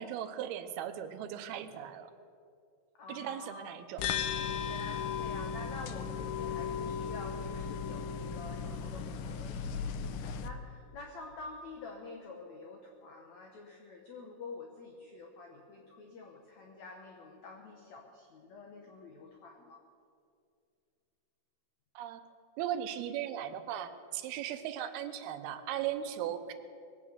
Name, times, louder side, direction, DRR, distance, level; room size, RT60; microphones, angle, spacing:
voice 1, 0.0-2.1 3.1-4.1 22.0-22.2 22.6-26.5, right 10 dB, 85° right, 9 dB, 2.8 m, -37 dB
voice 2, 2.9-4.1 4.4-19.8, left 3 dB, 65° left, 2 dB, 1.9 m, -48 dB
sound 1, 4.0-10.5, left 7 dB, 85° left, 1.8 m, -36 dB
20.5 x 8.6 x 6.7 m, 2.4 s
omnidirectional pair, 4.4 m